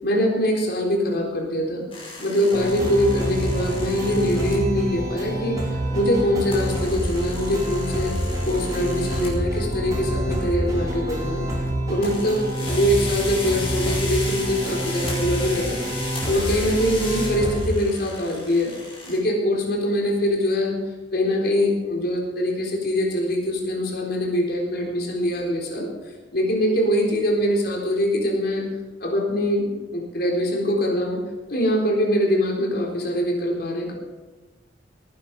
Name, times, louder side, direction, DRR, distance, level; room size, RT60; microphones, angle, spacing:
voice 1, 0.0-1.8 2.2-5.6 5.9-8.1 8.4-11.5 11.9-15.8 16.2-18.7 19.1-20.8 21.1-25.9 26.3-28.7 29.0-31.2 31.5-33.9, equal, 55° left, 0 dB, 3.9 m, -23 dB
sound 1, 1.9-4.5 6.5-9.4 10.3-10.7 11.1-11.7 12.0-19.2, left 2 dB, 30° left, 5.0 m, -36 dB
sound 2, 2.5-17.6, right 1 dB, 20° right, 4.3 m, -27 dB
19.0 x 10.5 x 5.3 m, 1.3 s
head